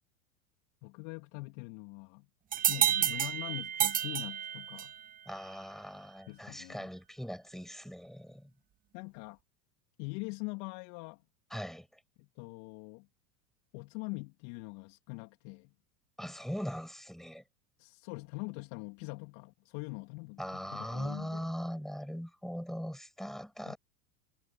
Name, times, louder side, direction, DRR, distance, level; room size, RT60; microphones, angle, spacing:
voice 1, 0.8-2.3 2.7-4.9 6.3-6.9 8.9-9.4 10.0-11.2 12.2-13.1 13.7-15.7 17.8-21.5 23.6-23.7, left 27 dB, 60° left, 3.1 m, -43 dB
sound 1, 2.5-5.1, right 10 dB, 20° right, 0.5 m, -30 dB
voice 2, 5.3-8.5 11.5-11.9 16.2-17.4 20.4-23.8, equal, ahead, 5.7 m, -40 dB
hypercardioid pair, 95°, 46 cm